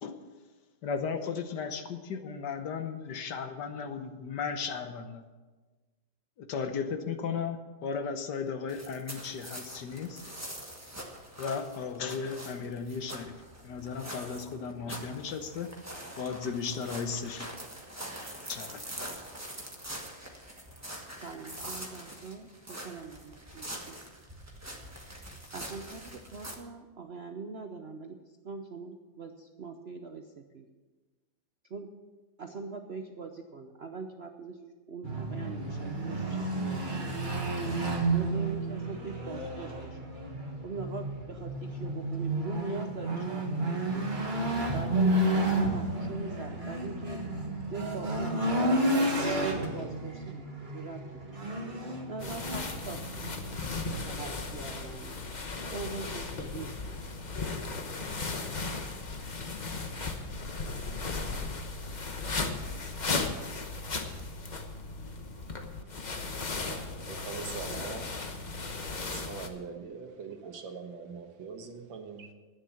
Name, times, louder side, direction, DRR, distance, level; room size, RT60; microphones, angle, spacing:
voice 1, 0.8-5.2 6.4-10.2 11.4-13.3 13.6-15.7 16.2-17.5 18.5-18.8, left 6 dB, 65° left, 8 dB, 1.5 m, -35 dB
sound 1, 8.7-26.5, right 1 dB, 10° right, 1.3 m, -44 dB
voice 2, 21.2-24.0 25.5-28.2 28.4-30.7 31.7-31.9 32.4-37.4 38.1-40.1 40.6-44.1 44.7-47.2 47.7-51.4 52.1-53.3 53.9-55.2 55.7-57.0, right 4 dB, 60° right, 5 dB, 0.6 m, -42 dB
sound 2, 35.0-54.0, right 1 dB, 30° right, 1.5 m, -31 dB
sound 3, 52.2-69.5, left 3 dB, 35° left, 0.8 m, -36 dB
voice 3, 66.7-68.1 69.1-72.3, right 5 dB, 90° right, 5 dB, 2.1 m, -42 dB
11.0 x 9.5 x 7.1 m, 1.3 s
omnidirectional pair, 2.0 m